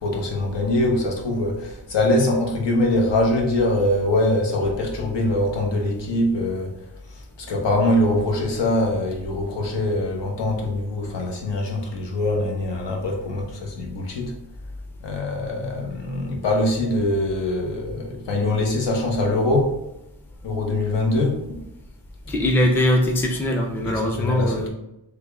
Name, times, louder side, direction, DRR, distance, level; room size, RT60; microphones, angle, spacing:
voice 1, 0.0-6.7 7.1-14.3 15.0-19.8 20.4-21.7 23.8-24.7, left 1 dB, 70° left, -1 dB, 0.9 m, -23 dB
voice 2, 22.3-24.7, left 1 dB, 5° left, 1 dB, 0.4 m, -21 dB
3.4 x 2.3 x 3.4 m, 0.88 s
wide cardioid pair, 95°, 44 cm